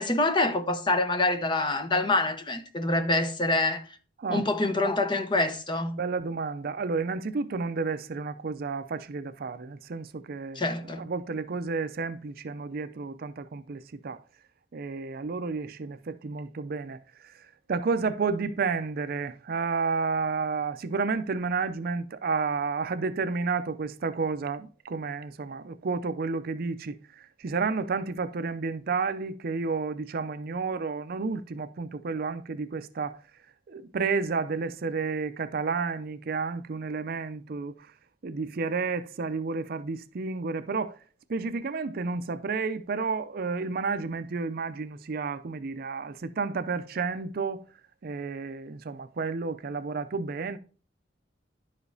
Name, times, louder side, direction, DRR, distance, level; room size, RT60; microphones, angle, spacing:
voice 1, 0.0-3.8 4.3-6.0 10.6-11.1, left 2 dB, 25° left, 0.8 m, -26 dB
voice 2, 6.0-14.2 14.7-33.2 33.7-37.9 38.2-41.0 41.3-47.6 48.0-50.6, right 4 dB, 50° right, 0.4 m, -31 dB
11.0 x 5.0 x 2.6 m
head